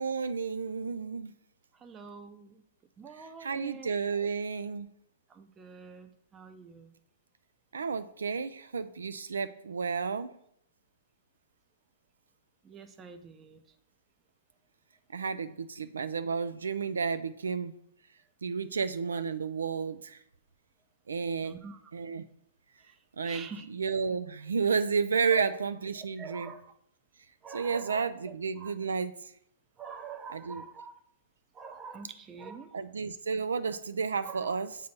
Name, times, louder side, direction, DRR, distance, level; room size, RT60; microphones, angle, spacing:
voice 1, 0.0-1.3 3.2-4.9 7.7-10.3 15.1-17.7 18.4-20.2 21.1-21.6 21.9-22.2 23.2-26.5 27.5-29.2 30.3-30.6 32.7-34.8, right 5 dB, 85° right, 13 dB, 0.3 m, -32 dB
voice 2, 1.8-2.6 3.0-3.9 4.2-4.3 5.3-6.9 12.6-13.6 21.4-21.8 23.2-23.7 25.3-25.6 26.2-26.7 27.4-28.0 28.6-28.8 29.8-30.9 31.5-32.8 34.2-34.5, right 5 dB, 20° right, 7 dB, 0.5 m, -45 dB
6.7 x 2.7 x 5.2 m, 0.72 s
hypercardioid pair, 130°, 0 cm